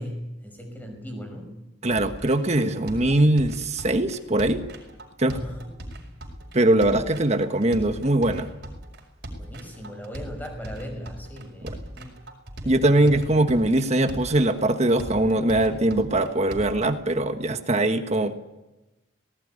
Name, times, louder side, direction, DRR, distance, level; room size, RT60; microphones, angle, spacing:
voice 1, 0.0-1.5 5.2-6.0 9.4-12.1 12.6-13.1, equal, 10° left, 3 dB, 5.8 m, -38 dB
voice 2, 1.8-4.6 5.2-5.4 6.5-8.5 11.6-11.8 12.6-18.3, right 1 dB, 35° right, 8 dB, 1.4 m, -21 dB
sound 1, 1.9-16.9, right 1 dB, 60° right, 5.4 m, -39 dB
19.0 x 18.0 x 9.9 m, 1.0 s
head